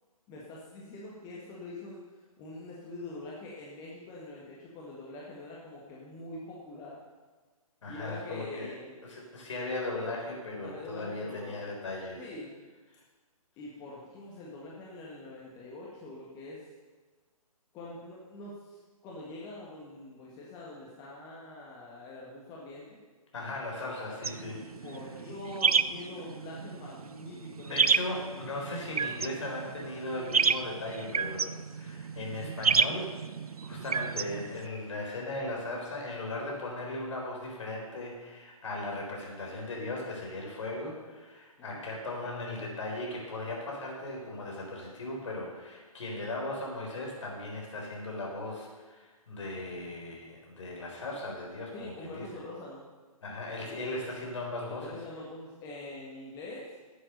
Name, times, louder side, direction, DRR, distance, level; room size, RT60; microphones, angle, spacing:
voice 1, 0.3-2.0 2.4-7.0 7.9-9.0 10.6-11.6 12.2-12.6 13.6-16.7 17.7-23.0 24.8-28.4 41.6-41.9 51.7-52.8 53.7-54.2 54.7-56.7, left 2 dB, 20° left, -4 dB, 1.7 m, -44 dB
voice 2, 7.8-8.7 9.0-12.2 23.3-24.6 27.6-33.2 33.6-52.3 53.2-55.0, left 2 dB, 55° left, -1 dB, 4.1 m, -37 dB
sound 1, 24.2-34.7, right 5 dB, 80° right, 0.5 m, -31 dB
11.0 x 8.2 x 6.7 m, 1.4 s
figure-of-eight pair, 135°, 19 cm